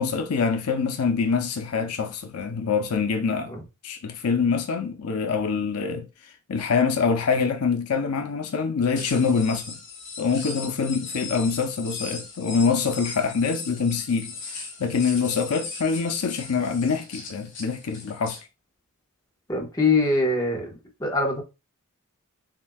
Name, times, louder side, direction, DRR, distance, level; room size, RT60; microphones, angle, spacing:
voice 1, 0.0-3.6 3.8-6.1 6.5-9.8 10.2-18.4, left 5 dB, 80° left, 0.6 m, -25 dB
sound 1, 9.0-18.4, left 4 dB, 60° left, 1.4 m, -38 dB
voice 2, 19.5-21.4, left 3 dB, 15° left, 1.2 m, -23 dB
7.2 x 2.7 x 2.3 m
head